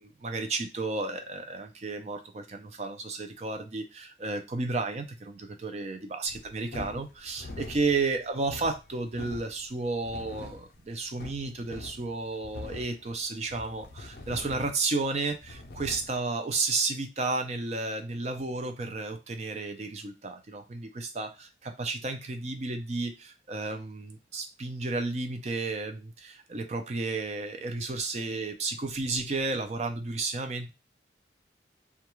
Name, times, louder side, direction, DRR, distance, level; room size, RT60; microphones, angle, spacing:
voice 1, 0.0-30.7, right 3 dB, 40° right, 6 dB, 0.4 m, -32 dB
sound 1, 6.3-16.2, left 2 dB, 60° left, 0.5 m, -44 dB
2.3 x 2.2 x 3.0 m, 0.26 s
head